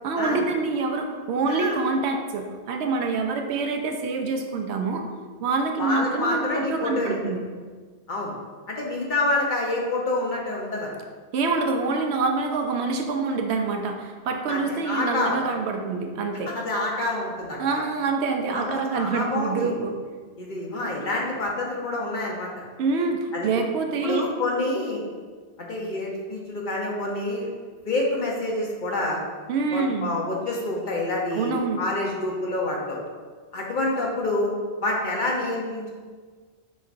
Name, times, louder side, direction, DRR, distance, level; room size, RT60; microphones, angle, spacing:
voice 1, 0.0-5.0 5.4-7.4 11.3-16.5 17.6-19.9 22.8-24.3 29.5-30.1 31.3-31.8, right 4 dB, 90° right, 4 dB, 0.9 m, -26 dB
voice 2, 1.5-1.8 5.8-7.3 8.1-8.3 8.7-10.9 14.5-15.4 16.5-17.8 18.5-19.7 20.4-22.6 23.3-23.5 24.0-25.0 25.6-27.5 27.8-29.2 29.7-33.0 33.5-34.5 34.8-35.9, left 2 dB, 50° left, -2 dB, 0.9 m, -27 dB
5.2 x 3.9 x 2.5 m, 1.5 s
omnidirectional pair, 1.1 m